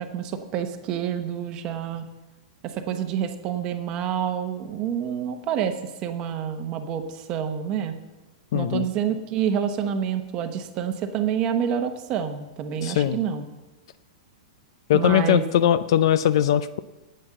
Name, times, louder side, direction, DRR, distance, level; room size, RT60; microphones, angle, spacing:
voice 1, 0.0-2.0 2.6-7.9 8.5-13.5 14.9-15.4, right 8 dB, 20° right, 7 dB, 0.9 m, -28 dB
voice 2, 8.5-8.8 12.8-13.2 14.9-16.8, left 10 dB, 45° left, 15 dB, 0.4 m, -20 dB
10.5 x 8.7 x 8.8 m, 1.1 s
supercardioid pair, 180°, 4 cm